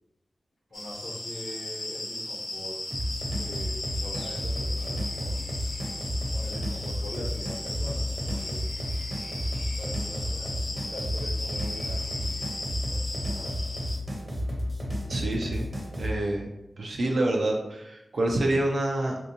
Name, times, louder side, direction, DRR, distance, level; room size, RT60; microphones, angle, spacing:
voice 1, 0.7-2.8 3.3-5.5 6.3-8.7 9.8-12.5 12.9-13.5, left 1 dB, 85° left, -7 dB, 0.8 m, -42 dB
sound 1, 0.7-14.0, left 1 dB, 30° left, 0.5 m, -36 dB
sound 2, 2.9-16.2, equal, 25° right, 0.6 m, -32 dB
voice 2, 15.1-15.7 16.0-16.5 16.8-19.2, right 1 dB, 70° right, -1 dB, 0.4 m, -27 dB
3.4 x 2.6 x 2.7 m, 0.96 s
wide cardioid pair, 95°, 0 cm